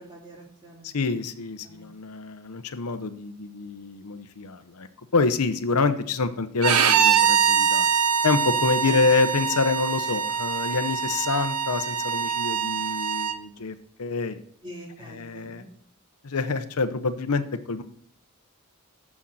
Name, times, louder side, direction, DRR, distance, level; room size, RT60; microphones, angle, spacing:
voice 1, 0.0-1.1 1.6-1.9 8.8-9.0 14.6-15.7, equal, 20° right, -2 dB, 2.4 m, -45 dB
voice 2, 0.8-4.9 5.1-7.9 8.2-14.4 15.0-15.6 16.2-17.8, left 4 dB, 85° left, 10 dB, 0.8 m, -27 dB
Bowed string instrument, 6.6-13.4, right 7 dB, 85° right, 0.8 m, -23 dB
7.2 x 6.3 x 7.6 m, 0.65 s
head